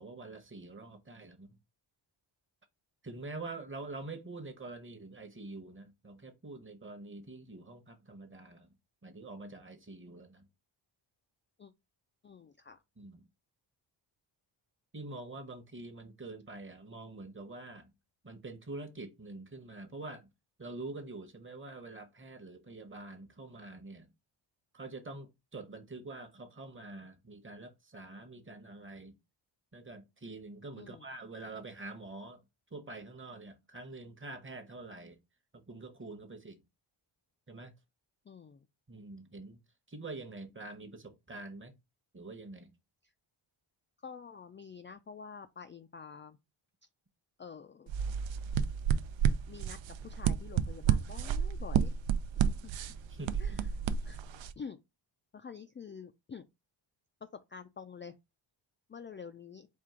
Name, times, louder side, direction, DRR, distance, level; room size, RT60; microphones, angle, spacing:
voice 1, 0.0-1.6 3.0-8.7 9.0-10.4 13.0-13.2 14.9-17.9 18.2-20.3 20.6-24.1 24.7-29.2 29.7-32.4 32.7-35.2 35.5-36.6 37.5-37.7 38.9-39.6 39.9-41.7 42.1-42.7 53.1-53.6, right 2 dB, 25° right, 1.0 m, -46 dB
voice 2, 12.2-12.8 30.8-31.0 38.3-38.7 44.0-46.4 47.4-47.9 49.5-52.0 52.3-52.7 53.4-53.5 54.0-54.2 54.6-54.8 55.3-56.4 57.3-58.2 58.9-59.7, left 6 dB, 25° left, 0.3 m, -48 dB
sound 1, 47.9-54.5, right 8 dB, 70° right, 0.5 m, -31 dB
4.5 x 2.4 x 3.6 m
cardioid pair, 75°, 49 cm